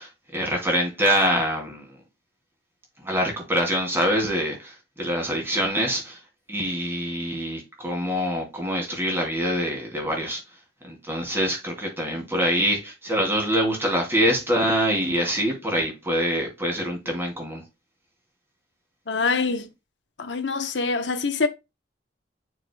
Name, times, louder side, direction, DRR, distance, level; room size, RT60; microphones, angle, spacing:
voice 1, 0.0-1.8 3.0-6.2 6.5-10.4 10.8-17.6, equal, 15° right, 2.8 m, -25 dB
voice 2, 19.1-19.7 20.2-21.5, left 4 dB, 85° left, 0.9 m, -25 dB
8.7 x 5.0 x 2.2 m
head